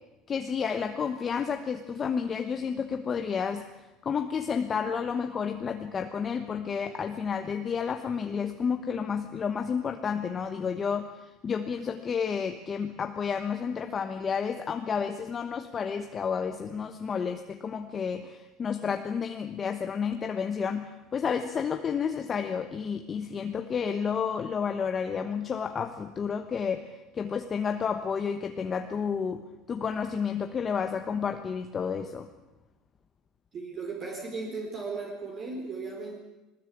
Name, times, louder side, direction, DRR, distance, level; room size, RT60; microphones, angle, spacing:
voice 1, 0.3-3.7 4.0-32.3, left 6 dB, 25° left, 6 dB, 1.1 m, -31 dB
voice 2, 33.5-36.2, right 4 dB, 35° right, 0 dB, 4.2 m, -36 dB
21.5 x 20.0 x 8.7 m, 1.0 s
cardioid pair, 155°, 0 cm